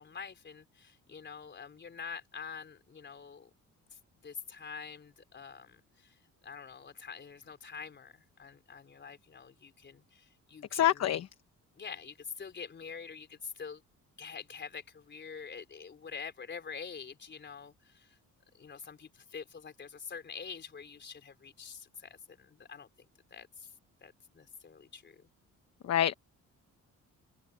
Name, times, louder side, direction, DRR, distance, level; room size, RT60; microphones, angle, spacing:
voice 1, 0.0-3.5 4.2-6.1 6.4-11.1 11.8-13.8 14.2-18.1 18.5-22.9 23.3-23.7 24.0-25.3, left 6 dB, 35° left, 3.8 m, -46 dB
voice 2, 10.7-11.3 25.8-26.1, left 11 dB, 55° left, 1.0 m, -26 dB
cardioid pair, 155°, 32 cm